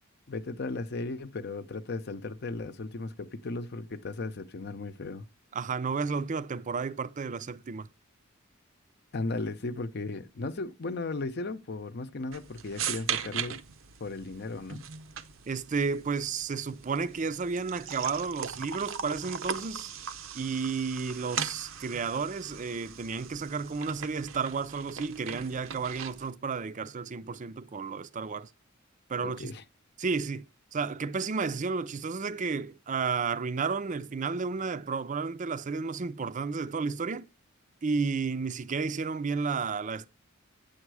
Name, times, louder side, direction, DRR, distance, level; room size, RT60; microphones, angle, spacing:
voice 1, 0.3-5.3 9.1-13.6 14.0-14.9 29.2-29.6, left 3 dB, 55° left, 0.7 m, -36 dB
voice 2, 5.5-7.9 15.5-19.9 20.3-28.5 29.1-29.5 30.0-37.3 37.8-40.1, right 5 dB, 40° right, 0.5 m, -32 dB
sound 1, 12.3-26.3, right 7 dB, 75° right, 0.7 m, -39 dB
9.1 x 7.1 x 4.7 m
head